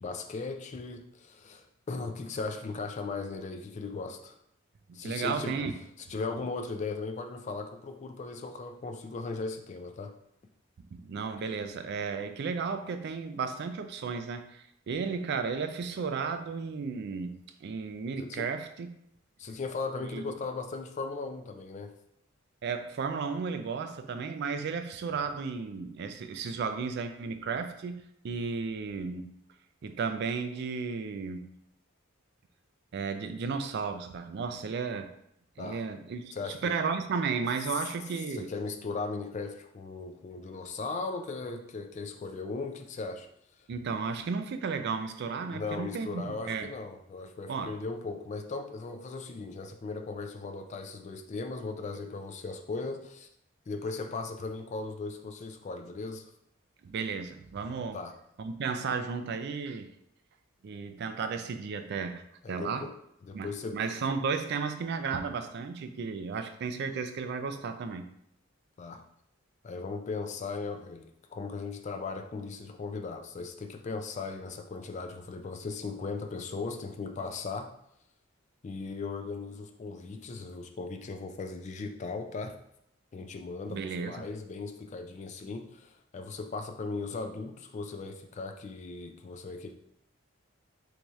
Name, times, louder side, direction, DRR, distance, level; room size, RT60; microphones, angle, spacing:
voice 1, 0.0-4.4 4.9-5.6 6.1-10.1 18.2-18.5 19.4-21.9 35.6-35.8 36.3-36.8 38.3-43.3 45.5-53.3 53.7-56.3 57.9-58.1 62.4-62.9 63.2-63.8 68.8-69.0 69.6-77.7 78.6-82.5 83.1-83.8 84.1-89.7, left 3 dB, 35° left, 6 dB, 0.3 m, -37 dB
voice 2, 4.9-5.7 10.9-18.9 20.0-20.3 22.6-29.4 29.8-31.6 32.9-35.1 35.6-36.2 36.6-38.5 43.7-46.7 47.5-47.7 56.8-58.0 58.4-59.9 60.6-62.9 63.3-68.1 83.7-84.3, right 5 dB, 50° right, 8 dB, 0.3 m, -34 dB
3.0 x 2.8 x 3.5 m, 0.74 s
head